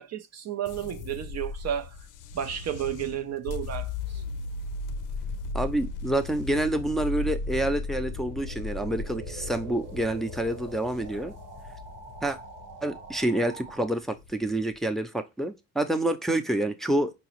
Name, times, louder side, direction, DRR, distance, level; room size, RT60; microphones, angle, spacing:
voice 1, 0.0-2.1 2.3-4.2, right 10 dB, 50° right, 0.5 m, -32 dB
sound 1, 0.6-14.8, left 3 dB, 70° left, 0.5 m, -37 dB
voice 2, 5.5-11.3 12.2-12.4 12.8-17.1, right 1 dB, ahead, 0.6 m, -28 dB
sound 2, 6.7-13.9, right 4 dB, 75° right, 1.0 m, -46 dB
4.6 x 2.0 x 2.9 m
supercardioid pair, 60°, 33 cm